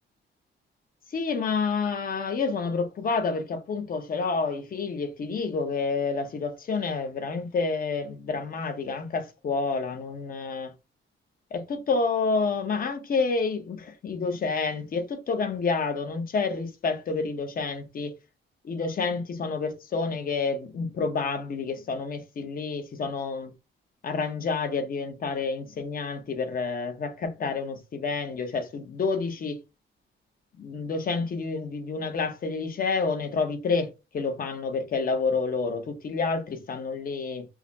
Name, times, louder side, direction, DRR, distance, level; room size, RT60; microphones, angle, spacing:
voice 1, 1.1-10.7 11.5-18.1 18.6-23.5 24.0-29.6 30.5-37.5, left 4 dB, 45° left, 0.9 m, -29 dB
4.8 x 2.2 x 2.7 m
cardioid pair, 145°, 21 cm